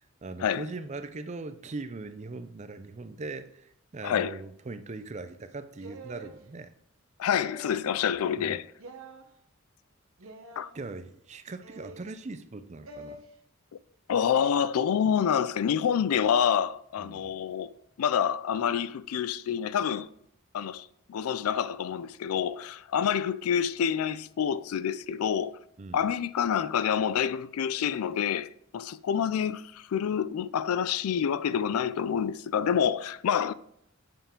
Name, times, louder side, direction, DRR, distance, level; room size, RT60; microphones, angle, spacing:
voice 1, 0.2-6.7 8.4-8.6 10.7-13.2 17.0-17.4 25.8-26.1, right 3 dB, 30° right, 0.4 m, -40 dB
voice 2, 4.0-4.4 7.2-8.7 10.6-10.7 14.1-17.7 18.0-20.1 20.5-25.6 25.9-33.5, left 8 dB, 85° left, 0.4 m, -27 dB
sound 1, 5.8-6.4 7.3-7.9 8.8-9.2 10.2-10.7 11.6-12.1 12.9-13.2, right 2 dB, 70° right, 0.9 m, -46 dB
7.0 x 5.5 x 3.7 m
head